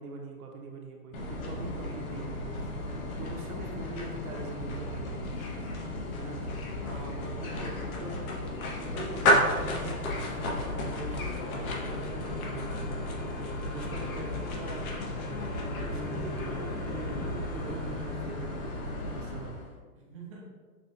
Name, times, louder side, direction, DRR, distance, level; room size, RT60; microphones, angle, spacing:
voice 1, 0.0-5.2 6.2-6.4 7.1-8.2 8.8-13.1 13.7-14.9 15.3-19.6, right 3 dB, 70° right, 1 dB, 1.0 m, -43 dB
sound 1, 1.1-19.8, left 1 dB, 60° left, 1.0 m, -33 dB
voice 2, 6.7-8.8 14.4-14.7 19.9-20.5, right 2 dB, 25° right, -3 dB, 0.4 m, -46 dB
6.2 x 2.4 x 2.7 m, 1.4 s
hypercardioid pair, 155°, 46 cm